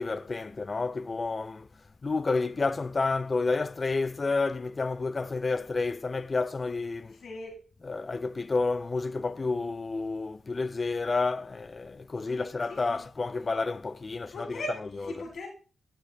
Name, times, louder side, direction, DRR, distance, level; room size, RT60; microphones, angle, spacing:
voice 1, 0.0-1.7 2.0-7.2 7.8-15.3, left 3 dB, 40° left, 0.4 m, -30 dB
voice 2, 7.1-7.6 12.3-13.0 14.3-15.5, left 1 dB, 70° left, 1.9 m, -40 dB
13.0 x 6.7 x 2.2 m
supercardioid pair, 50°, 0 cm